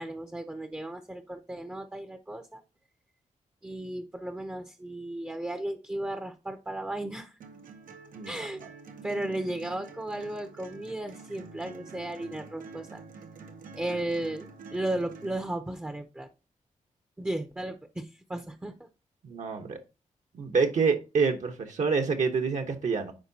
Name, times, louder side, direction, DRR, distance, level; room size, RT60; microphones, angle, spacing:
voice 1, 0.0-2.6 3.6-7.3 8.3-8.6 9.0-13.0 13.8-16.3 17.2-18.9, right 1 dB, 10° right, 0.6 m, -35 dB
sound 1, 7.4-15.4, right 4 dB, 85° right, 0.9 m, -47 dB
voice 2, 8.1-8.5 19.2-19.8 20.3-23.1, right 5 dB, 65° right, 1.0 m, -27 dB
10.5 x 4.5 x 2.8 m
wide cardioid pair, 120°, 14 cm